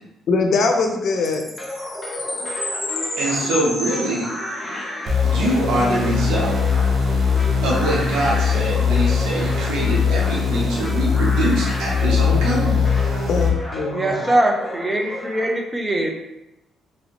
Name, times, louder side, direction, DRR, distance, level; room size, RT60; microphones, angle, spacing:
voice 1, 0.3-1.4 13.3-14.2, left 3 dB, 65° left, 3 dB, 0.5 m, -21 dB
Chime, 1.2-5.0, left 2 dB, 35° left, 1.3 m, -30 dB
sound 1, 1.6-15.4, left 1 dB, 15° left, 0.9 m, -32 dB
voice 2, 3.2-4.3 5.2-6.6 7.6-12.8, right 1 dB, 85° right, -4 dB, 0.7 m, -23 dB
sound 2, 5.1-13.5, left 6 dB, 45° right, 0.9 m, -20 dB
voice 3, 13.9-16.1, right 1 dB, 20° right, 1 dB, 0.6 m, -21 dB
3.1 x 2.6 x 2.9 m, 0.90 s
cardioid pair, 90°, 0 cm